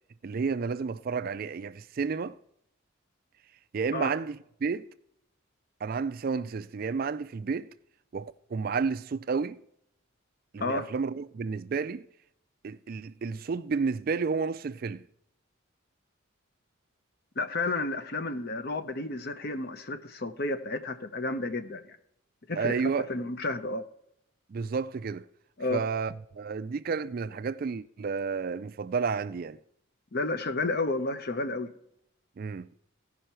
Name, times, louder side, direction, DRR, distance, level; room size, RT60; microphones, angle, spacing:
voice 1, 0.2-2.4 3.7-4.9 5.8-7.7 8.1-9.6 10.5-12.0 12.6-15.0 22.6-23.1 24.5-25.3 25.7-29.6 32.4-32.7, right 5 dB, 45° right, 0.3 m, -31 dB
voice 2, 17.4-22.0 22.5-22.8 23.1-23.8 25.6-25.8 30.1-31.7, left 2 dB, 50° left, 0.8 m, -31 dB
15.5 x 5.6 x 4.4 m
head